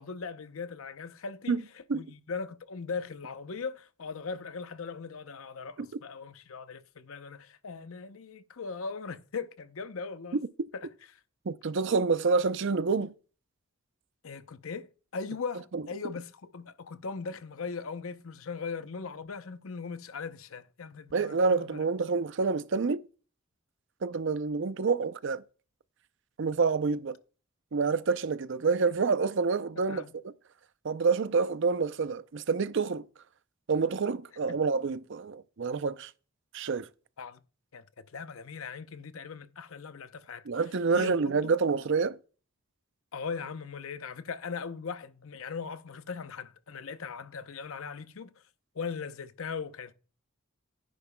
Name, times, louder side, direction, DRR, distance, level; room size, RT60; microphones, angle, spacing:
voice 1, 0.0-1.6 1.9-10.4 10.7-10.9 14.2-21.8 29.9-30.1 34.5-34.6 37.2-37.4 37.7-37.8 38.1-40.4 40.9-41.2 41.4-41.5 43.1-48.3 48.7-49.9, left 5 dB, 75° left, 0.7 m, -39 dB
voice 2, 11.5-13.1 15.7-15.8 21.1-23.0 24.0-25.4 26.4-27.2 27.7-30.0 30.8-33.1 33.7-36.1 36.5-36.9 40.5-42.2, right 4 dB, 60° right, 0.5 m, -27 dB
12.0 x 10.5 x 2.2 m
head